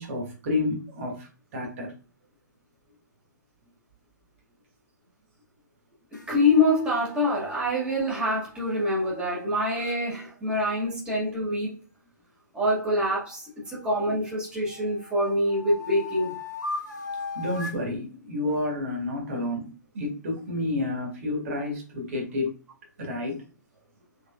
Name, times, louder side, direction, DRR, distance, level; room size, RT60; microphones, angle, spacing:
voice 1, 0.0-1.9 17.3-22.5 23.0-23.4, left 2 dB, 45° right, 1 dB, 1.5 m, -30 dB
sound 1, 6.1-10.0 12.9-14.2 14.7-17.9, left 3 dB, 70° left, 1.2 m, -39 dB
voice 2, 6.1-11.8 12.5-16.3, left 1 dB, 10° right, -6 dB, 1.8 m, -25 dB
3.7 x 3.5 x 2.4 m, 0.35 s
figure-of-eight pair, 130°, 10 cm